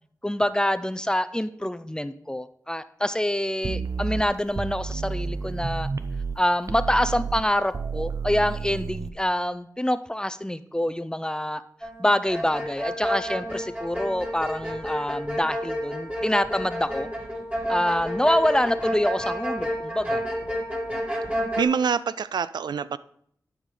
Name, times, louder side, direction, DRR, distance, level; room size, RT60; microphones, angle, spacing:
voice 1, 0.2-5.9 6.4-11.6 12.0-17.1 17.7-20.2, left 1 dB, 10° left, 0.5 m, -26 dB
sound 1, 3.6-6.4 6.7-9.1, right 5 dB, 50° right, 0.6 m, -31 dB
sound 2, 11.8-12.0 12.3-21.6, equal, 20° right, 2.0 m, -30 dB
voice 2, 21.6-23.0, right 6 dB, 90° right, 0.3 m, -25 dB
11.0 x 5.0 x 3.8 m
cardioid pair, 55°, 7 cm